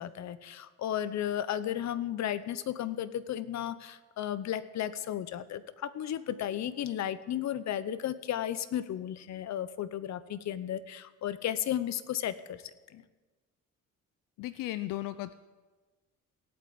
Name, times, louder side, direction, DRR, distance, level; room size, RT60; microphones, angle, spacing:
voice 1, 0.0-12.6 12.9-13.0, left 11 dB, 55° left, 14 dB, 1.0 m, -34 dB
voice 2, 14.4-15.3, left 16 dB, 80° left, 13 dB, 0.7 m, -35 dB
17.0 x 9.0 x 8.6 m, 1.3 s
cardioid pair, 105°, 32 cm